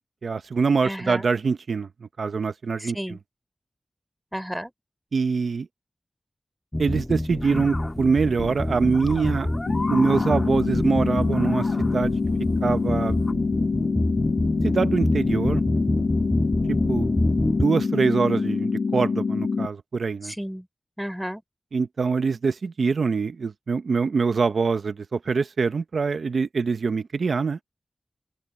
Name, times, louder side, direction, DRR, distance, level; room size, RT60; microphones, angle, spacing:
voice 1, 0.2-1.9 2.2-3.0 5.1-5.7 6.8-9.5 9.9-12.1 12.6-13.2 14.6-15.6 16.9-17.1 17.6-20.3 21.7-27.6, right 5 dB, 85° right, 0.8 m, -24 dB
voice 2, 0.8-1.2 2.8-3.2 4.3-4.7 20.2-20.7 21.0-21.4, equal, 5° right, 3.3 m, -32 dB
sound 1, 6.7-17.7, left 1 dB, 20° left, 1.3 m, -27 dB
sound 2, 7.4-13.3, left 2 dB, 40° left, 1.8 m, -38 dB
sound 3, 9.7-19.7, left 4 dB, 80° left, 0.4 m, -25 dB
open air
cardioid pair, 50°, 0 cm